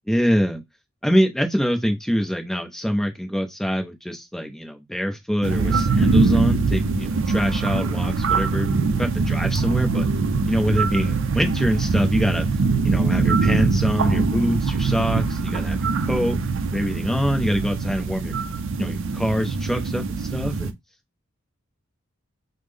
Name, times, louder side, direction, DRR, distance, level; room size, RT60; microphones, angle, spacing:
voice 1, 0.1-0.6 1.0-8.7 9.0-10.1 10.5-12.5 12.8-16.4 16.7-18.3 18.8-20.7, equal, ahead, 0.5 m, -24 dB
sound 1, 5.4-20.7, right 4 dB, 60° right, 0.4 m, -23 dB
3.6 x 2.0 x 3.2 m
head